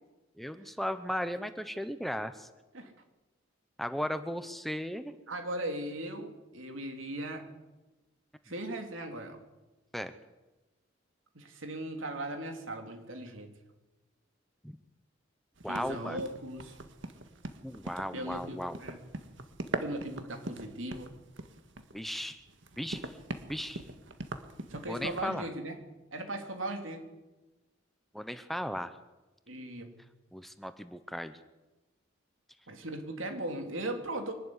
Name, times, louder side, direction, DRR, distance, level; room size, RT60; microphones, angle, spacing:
voice 1, 0.4-2.5 3.8-5.1 9.9-10.1 14.6-14.8 15.6-16.2 17.6-18.8 21.9-22.4 22.8-23.1 23.5-23.8 24.8-25.5 28.1-28.9 30.3-31.4, equal, ahead, 10 dB, 0.9 m, -36 dB
voice 2, 5.3-7.5 8.5-9.4 11.4-13.5 15.7-16.7 18.1-19.0 19.8-21.1 24.7-25.8 26.1-27.1 29.5-29.9 32.7-34.3, right 1 dB, 90° right, 4 dB, 3.5 m, -38 dB
sound 1, 15.6-25.3, right 2 dB, 70° right, 1.8 m, -42 dB
24.0 x 12.5 x 9.8 m, 1.1 s
head